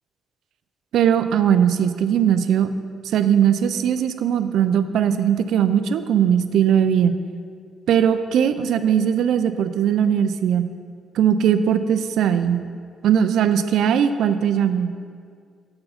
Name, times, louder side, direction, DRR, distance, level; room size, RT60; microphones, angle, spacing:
voice 1, 0.9-2.7 3.0-7.2 7.9-10.7 11.1-12.6 13.0-14.9, right 8 dB, 75° right, 11 dB, 0.4 m, -19 dB
6.8 x 6.7 x 5.7 m, 2.1 s
cardioid pair, 170°, 0 cm